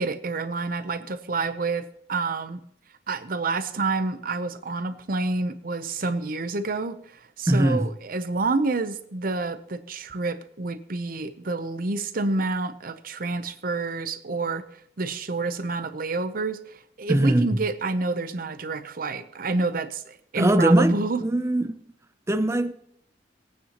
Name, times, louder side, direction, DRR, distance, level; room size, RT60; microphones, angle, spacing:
voice 1, 0.0-2.6 3.1-14.6 15.0-21.2, right 3 dB, 50° right, 0.7 m, -28 dB
voice 2, 7.5-7.9 17.1-17.6 20.4-21.8 22.3-22.7, right 1 dB, 15° right, 0.5 m, -21 dB
20.0 x 9.2 x 3.0 m
head